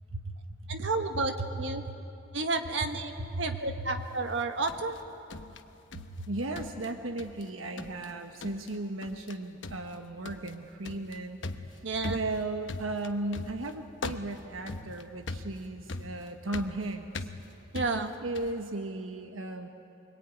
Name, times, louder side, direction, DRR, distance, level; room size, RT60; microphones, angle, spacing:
voice 1, 0.7-1.8 2.3-5.0 11.8-12.2 17.7-18.1, right 3 dB, 65° right, 6 dB, 1.5 m, -31 dB
voice 2, 3.2-3.6 5.9-11.4 11.7-17.3 17.9-19.7, right 2 dB, 85° right, 5 dB, 1.2 m, -36 dB
sound 1, 4.3-6.3 6.6-7.5 7.8-8.1 8.4-8.8 9.0-9.4 9.6-18.6, left 2 dB, 65° left, 1.0 m, -41 dB
24.5 x 22.5 x 9.3 m, 2.8 s
head